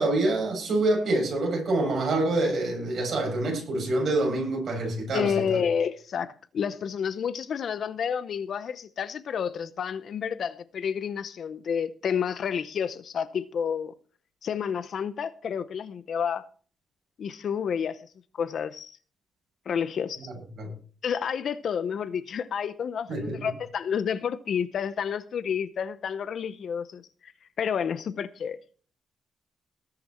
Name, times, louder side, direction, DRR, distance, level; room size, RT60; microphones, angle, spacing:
voice 1, 0.0-5.6 20.6-20.7 23.1-23.4, right 2 dB, 50° right, 6.9 m, -26 dB
voice 2, 5.1-13.9 14.4-16.4 17.2-18.0 18.4-18.9 19.7-20.3 21.0-27.3 27.6-28.6, left 7 dB, 55° left, 0.7 m, -30 dB
19.5 x 6.8 x 4.3 m
cardioid pair, 135°, 0 cm